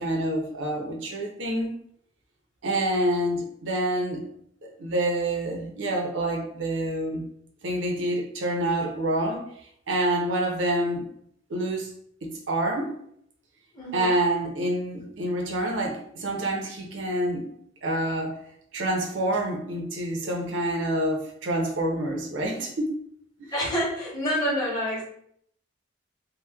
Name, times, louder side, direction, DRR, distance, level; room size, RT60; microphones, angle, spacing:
voice 1, 0.0-1.7 2.6-4.2 4.8-7.2 7.6-9.4 9.9-11.0 11.5-11.9 12.2-12.9 13.9-17.5 17.8-18.4 18.7-22.9, right 1 dB, 90° right, 0 dB, 0.6 m, -27 dB
voice 2, 13.7-14.2 23.5-25.0, equal, 20° left, -8 dB, 0.7 m, -27 dB
2.8 x 2.1 x 2.2 m, 0.68 s
head